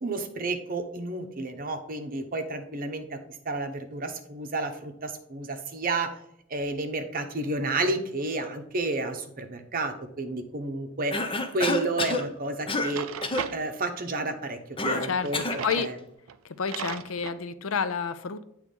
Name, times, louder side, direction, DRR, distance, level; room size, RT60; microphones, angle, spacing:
voice 1, 0.0-3.2 3.4-6.1 6.5-13.1 13.5-14.6 14.8-15.4 15.8-15.9, right 2 dB, 45° right, 6 dB, 0.9 m, -31 dB
Cough, 11.1-12.3 12.7-13.0 13.2-13.5 14.8-15.7, left 2 dB, 25° left, 0.6 m, -28 dB
Drawer open or close, 12.1-12.2 12.7-13.6 15.2-15.9 16.3-16.4 16.7-17.4, right 8 dB, 90° right, 0.4 m, -37 dB
voice 2, 15.0-15.9 16.6-18.5, left 6 dB, 80° left, 13 dB, 0.5 m, -30 dB
8.3 x 3.1 x 5.2 m, 0.76 s
head